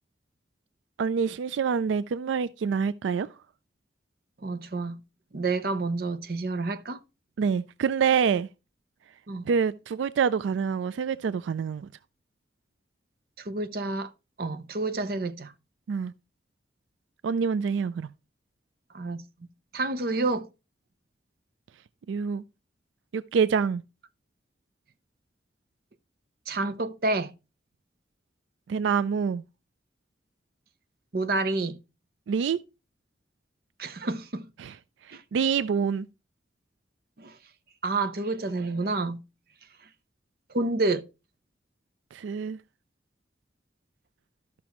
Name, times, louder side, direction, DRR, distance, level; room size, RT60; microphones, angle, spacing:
voice 1, 1.0-3.3 7.4-8.5 9.5-11.9 15.9-16.1 17.2-18.1 22.1-22.4 23.1-23.8 28.7-29.4 32.3-32.6 34.6-34.7 35.3-36.1 42.1-42.6, right 6 dB, 90° right, 0.3 m, -26 dB
voice 2, 4.4-5.0 5.3-7.0 9.3-9.5 13.5-14.1 14.4-15.5 18.9-19.2 19.7-20.5 26.5-27.3 31.1-31.8 33.8-34.5 35.1-35.2 37.2-37.3 37.8-39.2 40.5-41.0, right 2 dB, 55° right, 0.6 m, -29 dB
13.5 x 6.0 x 3.0 m
head